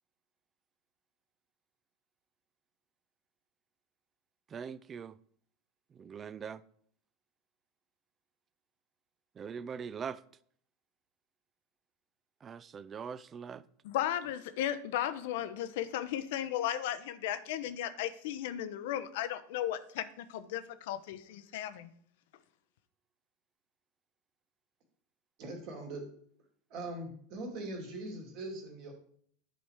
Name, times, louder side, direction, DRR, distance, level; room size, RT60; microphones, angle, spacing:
voice 1, 4.5-5.1 6.0-6.6 9.4-10.2 12.4-13.6, right 6 dB, 30° right, 0.4 m, -42 dB
voice 2, 13.8-21.9, left 11 dB, 65° left, 0.6 m, -35 dB
voice 3, 25.4-26.0 26.7-28.9, right 2 dB, 50° right, 2.5 m, -41 dB
10.0 x 4.2 x 4.8 m
hypercardioid pair, 85°, 0 cm